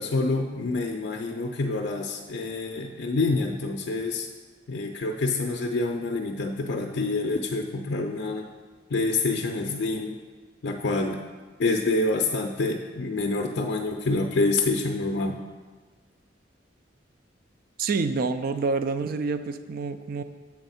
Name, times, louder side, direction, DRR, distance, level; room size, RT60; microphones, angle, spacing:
voice 1, 0.0-4.3 4.7-8.5 8.9-10.2 10.6-11.2 11.6-15.4, left 3 dB, 60° left, 1 dB, 0.4 m, -27 dB
voice 2, 17.8-20.2, right 4 dB, 50° right, 10 dB, 0.3 m, -27 dB
7.6 x 3.5 x 5.6 m, 1.4 s
head